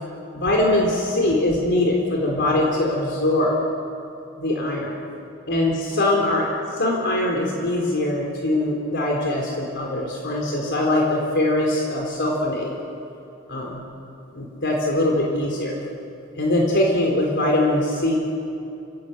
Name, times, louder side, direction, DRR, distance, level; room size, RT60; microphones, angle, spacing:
voice 1, 0.3-3.5 4.4-5.0 5.5-6.5 6.8-12.7 13.5-13.9 14.3-15.8 16.4-18.1, left 1 dB, 60° left, -1 dB, 3.9 m, -22 dB
29.5 x 17.0 x 8.2 m, 2.7 s
head